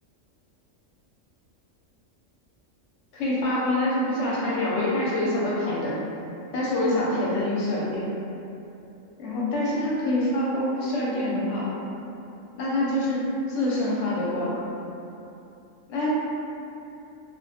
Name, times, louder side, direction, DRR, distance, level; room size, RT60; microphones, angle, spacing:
voice 1, 3.1-6.0 6.5-8.1 9.2-11.7 12.6-14.6 15.9-16.1, left 1 dB, 70° left, -6 dB, 0.8 m, -25 dB
2.3 x 2.1 x 2.7 m, 2.8 s
omnidirectional pair, 1.4 m